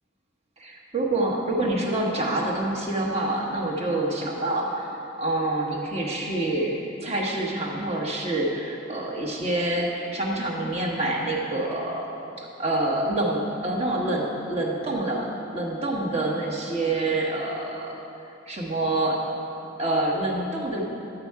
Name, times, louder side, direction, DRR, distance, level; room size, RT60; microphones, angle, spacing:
voice 1, 0.6-12.1 12.4-17.9 18.5-19.2 19.8-20.8, right 2 dB, 30° right, -2 dB, 1.4 m, -27 dB
11.0 x 8.0 x 4.7 m, 2.8 s
head